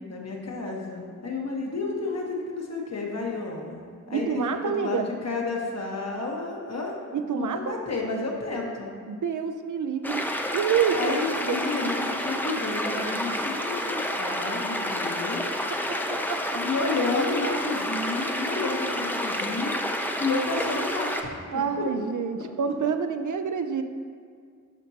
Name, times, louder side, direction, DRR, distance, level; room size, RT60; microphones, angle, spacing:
voice 1, 0.1-3.8 4.1-6.9 7.3-8.9 10.9-15.5 16.5-21.8, left 3 dB, 60° left, -1 dB, 1.2 m, -31 dB
voice 2, 4.1-5.1 7.1-7.8 9.1-10.3 10.5-11.1 11.4-11.6 14.8-15.2 15.7-16.6 21.5-23.8, right 7 dB, 85° right, 8 dB, 0.5 m, -28 dB
sound 1, 10.0-21.2, left 1 dB, 5° left, 0.5 m, -29 dB
12.0 x 5.2 x 2.8 m, 2.1 s
wide cardioid pair, 85°, 30 cm